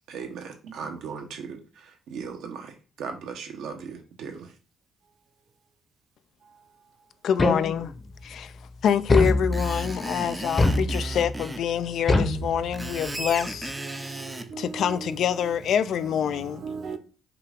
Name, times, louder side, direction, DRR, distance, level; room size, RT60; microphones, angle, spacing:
voice 1, 0.1-4.5, right 6 dB, 80° right, 0.9 m, -38 dB
voice 2, 7.2-7.9 8.2-8.5 8.8-13.7 14.6-16.6, left 8 dB, 70° left, 0.3 m, -26 dB
sound 1, 7.4-8.1 9.1-9.9 10.6-11.4 12.1-13.1, left 2 dB, 30° left, 0.8 m, -24 dB
Screech, 9.2-11.6 12.5-14.5, right 2 dB, 15° right, 0.5 m, -36 dB
voice 3, 13.8-15.1 16.3-17.0, right 5 dB, 55° right, 0.8 m, -38 dB
5.7 x 2.4 x 3.5 m
cardioid pair, 90°, 0 cm